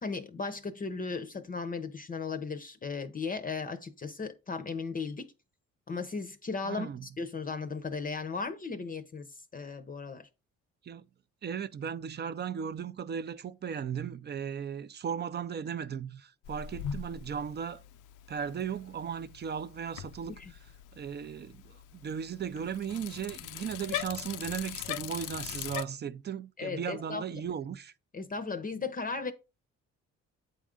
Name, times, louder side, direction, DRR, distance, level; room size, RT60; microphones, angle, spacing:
voice 1, 0.0-5.3 5.9-10.3 20.3-20.5 26.6-27.2 28.1-29.3, left 4 dB, 30° left, 0.6 m, -36 dB
voice 2, 6.6-7.1 10.8-11.1 11.4-17.8 18.3-20.4 20.9-27.9, right 7 dB, 35° right, 0.4 m, -36 dB
Bicycle, 16.4-25.8, left 10 dB, 85° left, 0.5 m, -41 dB
8.3 x 3.7 x 3.7 m
cardioid pair, 90°, 30 cm